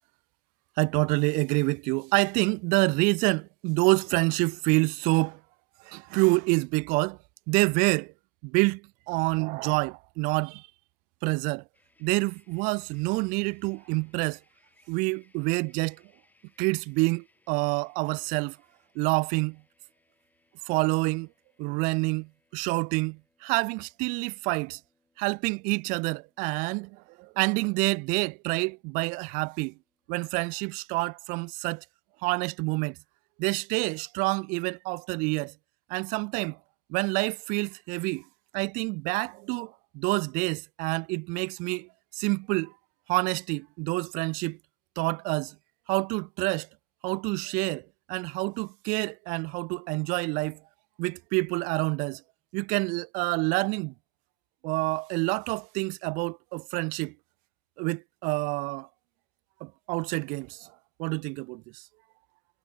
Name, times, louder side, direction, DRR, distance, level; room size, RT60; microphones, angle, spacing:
voice 1, 0.8-5.4 5.8-7.2 7.5-8.1 8.4-10.7 11.2-11.6 12.0-14.4 14.9-16.0 16.6-18.6 19.0-19.6 20.7-21.3 21.6-24.8 25.2-29.7 30.1-31.8 32.2-33.0 33.4-35.5 35.9-36.6 36.9-38.2 38.5-41.9 42.2-42.7 43.1-44.6 45.0-45.5 45.9-46.7 47.0-50.6 51.0-52.2 52.5-53.9 54.6-57.1 57.8-58.9 59.6-60.7 61.0-61.8, right 29 dB, 40° right, 0.4 m, -27 dB
sound 1, 11.7-30.1, left 2 dB, 10° left, 6.5 m, -70 dB
hypercardioid pair, 120°, 21 cm